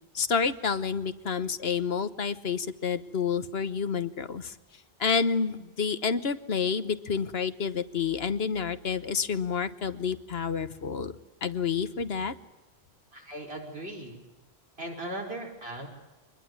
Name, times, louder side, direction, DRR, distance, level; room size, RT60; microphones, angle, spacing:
voice 1, 0.1-4.5 5.0-11.1 11.4-12.3, left 6 dB, 70° left, 12 dB, 1.3 m, -29 dB
voice 2, 13.1-14.2 14.8-15.9, right 1 dB, 70° right, 0 dB, 5.4 m, -38 dB
25.0 x 20.5 x 9.6 m, 1.0 s
omnidirectional pair, 1.1 m